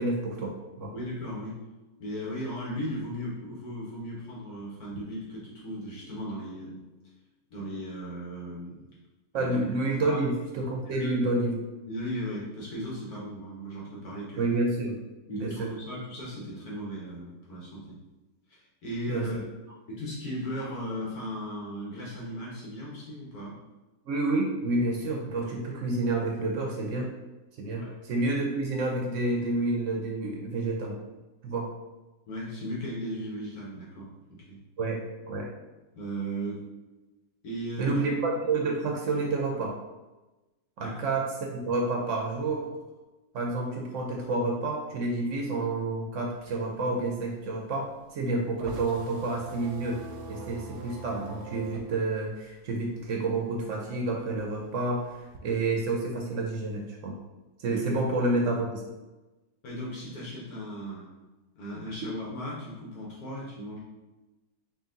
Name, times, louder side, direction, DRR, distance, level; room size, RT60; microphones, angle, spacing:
voice 1, 0.0-0.9 9.3-11.6 14.4-15.0 15.3-15.7 19.1-19.4 24.0-27.1 27.6-30.9 31.4-31.7 34.8-35.5 37.8-39.8 40.8-42.6 43.3-50.0 50.3-57.2 57.6-58.8, right 2 dB, 65° right, 0 dB, 0.8 m, -29 dB
voice 2, 0.9-1.6 2.0-6.8 7.5-8.8 9.4-9.6 9.9-10.2 10.8-11.2 11.9-14.4 15.3-18.0 18.5-19.3 19.9-23.5 27.7-28.0 32.3-34.6 35.9-36.6 37.4-38.0 40.8-41.0 57.7-57.8 59.6-61.1 61.6-63.8, equal, 75° left, -5 dB, 1.5 m, -37 dB
sound 1, 46.2-53.3 53.6-55.4, right 3 dB, 90° right, 1.1 m, -44 dB
3.9 x 2.5 x 3.7 m, 1.1 s
omnidirectional pair, 1.6 m